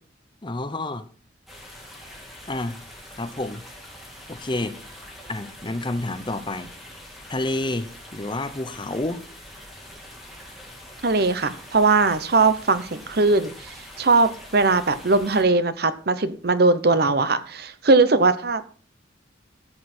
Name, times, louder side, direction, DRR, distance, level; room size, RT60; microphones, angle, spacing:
voice 1, 0.4-1.1 2.5-2.8 3.2-3.6 4.3-4.8 5.3-6.7 7.3-9.2, left 2 dB, 25° left, 10 dB, 0.8 m, -29 dB
sound 1, 1.5-15.4, left 1 dB, ahead, 3.1 m, -44 dB
voice 2, 11.0-18.6, right 3 dB, 55° right, 12 dB, 0.9 m, -20 dB
14.0 x 8.3 x 4.4 m, 0.41 s
head